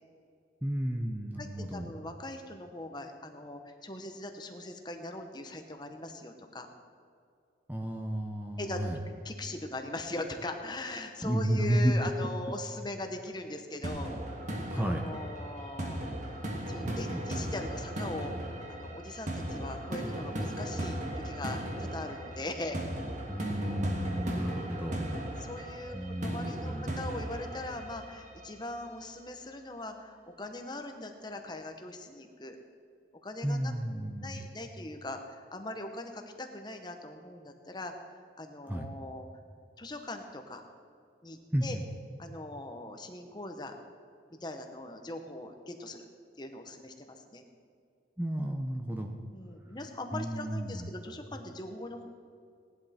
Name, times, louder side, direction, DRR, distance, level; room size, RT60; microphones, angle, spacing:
voice 1, 0.6-1.9 7.7-9.0 11.2-11.9 14.7-15.1 16.8-17.4 23.3-25.2 25.9-27.0 33.4-34.4 38.7-38.9 41.5-41.8 48.2-49.1 50.1-50.9, right 1 dB, 10° right, 2 dB, 0.7 m, -32 dB
voice 2, 1.4-6.7 8.6-8.8 9.2-14.1 14.7-16.4 16.7-22.8 25.4-32.6 33.2-33.7 34.2-37.9 38.4-39.3 39.8-40.7 41.2-41.8 42.2-43.8 44.3-46.1 46.4-47.4 49.3-52.1, left 2 dB, 20° left, 5 dB, 1.0 m, -41 dB
sound 1, 13.8-28.8, right 1 dB, 40° right, 1.6 m, -37 dB
18.0 x 11.0 x 4.4 m, 2.3 s
head